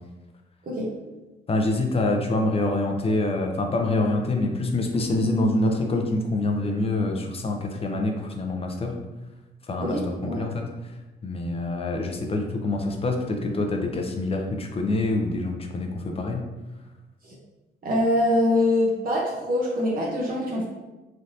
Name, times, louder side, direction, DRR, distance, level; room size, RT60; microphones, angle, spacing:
voice 1, 1.5-8.9 9.7-10.9 11.2-16.4, left 2 dB, 30° left, 3 dB, 0.5 m, -26 dB
voice 2, 9.8-10.4 17.2-17.4 17.8-20.6, left 1 dB, 45° right, -4 dB, 0.7 m, -24 dB
3.3 x 2.6 x 2.6 m, 1.1 s
cardioid pair, 90°, 20 cm